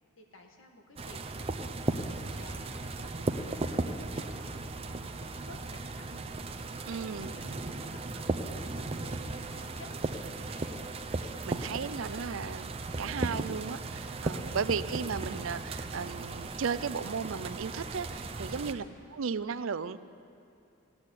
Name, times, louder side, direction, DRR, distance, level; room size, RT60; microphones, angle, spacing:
voice 1, 0.2-4.5 4.8-6.2 6.9-9.9 10.2-10.9 14.4-14.7 18.7-19.0, left 2 dB, 70° left, 3 dB, 1.6 m, -54 dB
sound 1, 1.0-18.7, right 2 dB, 25° right, 0.6 m, -36 dB
voice 2, 6.9-7.4 11.4-18.8 19.1-20.0, right 6 dB, 70° right, 14 dB, 0.5 m, -35 dB
14.0 x 8.8 x 9.7 m, 2.6 s
head